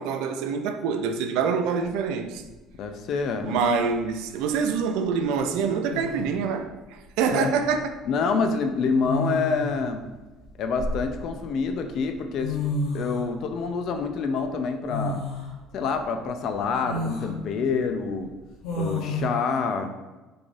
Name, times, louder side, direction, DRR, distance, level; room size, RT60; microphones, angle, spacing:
voice 1, 0.0-2.4 3.4-6.7 7.2-7.9, right 6 dB, 75° right, 0.3 m, -25 dB
sound 1, 1.8-1.9 3.4-3.9 5.5-5.6 5.9-6.4 7.7-7.9 9.0-9.8 10.4-11.5 12.1-12.2 12.4-13.3 14.9-15.5 16.0-16.1 16.8-17.3 18.6-19.3, left 2 dB, 80° left, 0.9 m, -30 dB
voice 2, 2.7-3.5 7.3-7.5 8.1-10.1 10.6-12.6 12.9-15.2 15.7-18.3 18.8-19.9, left 5 dB, 45° left, 0.3 m, -27 dB
3.6 x 3.2 x 2.5 m
cardioid pair, 170°, 0 cm